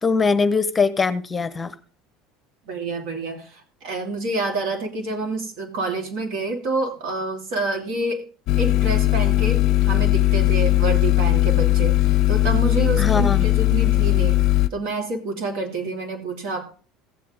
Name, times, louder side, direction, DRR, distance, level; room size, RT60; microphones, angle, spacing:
voice 1, 0.0-1.7 13.0-13.4, left 4 dB, 20° left, 0.8 m, -21 dB
voice 2, 2.7-8.2 8.6-14.4 14.7-16.6, right 2 dB, 65° right, 2.6 m, -28 dB
sound 1, 8.5-14.7, left 17 dB, 60° left, 0.5 m, -18 dB
15.5 x 7.6 x 3.6 m
hypercardioid pair, 85°, 0 cm